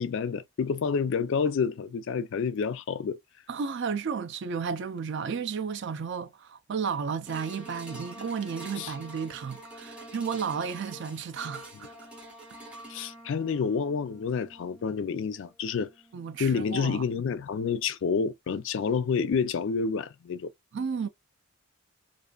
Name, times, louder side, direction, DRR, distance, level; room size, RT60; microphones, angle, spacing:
voice 1, 0.0-3.2 8.8-8.9 12.9-15.9 16.4-20.5, left 5 dB, 55° left, 0.3 m, -29 dB
voice 2, 3.5-11.9 13.0-13.1 16.1-17.0 20.7-21.1, right 6 dB, 50° right, 0.4 m, -33 dB
sound 1, 7.3-17.7 18.2-18.3, right 1 dB, 5° right, 0.7 m, -47 dB
2.5 x 2.5 x 2.3 m
head